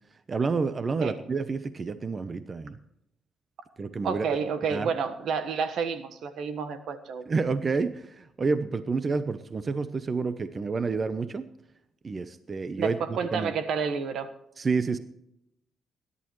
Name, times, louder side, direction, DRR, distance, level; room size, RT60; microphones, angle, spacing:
voice 1, 0.3-2.8 3.8-4.3 4.7-4.9 7.3-11.5 12.0-13.5 14.6-15.0, right 4 dB, 35° right, 12 dB, 0.8 m, -29 dB
voice 2, 4.0-7.2 12.8-14.3, right 6 dB, 70° right, 9 dB, 1.3 m, -30 dB
21.0 x 11.0 x 3.1 m, 0.78 s
cardioid pair, 90°, 0 cm